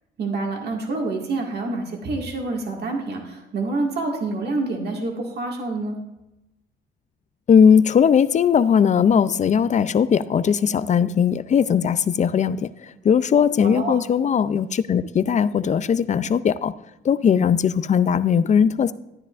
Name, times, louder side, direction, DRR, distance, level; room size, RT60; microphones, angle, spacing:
voice 1, 0.2-6.0 13.6-14.1, right 3 dB, 55° right, 1 dB, 2.0 m, -27 dB
voice 2, 7.5-16.7 17.0-18.9, left 7 dB, 40° left, 15 dB, 0.4 m, -19 dB
12.5 x 9.8 x 2.5 m, 0.95 s
cardioid pair, 90°, 20 cm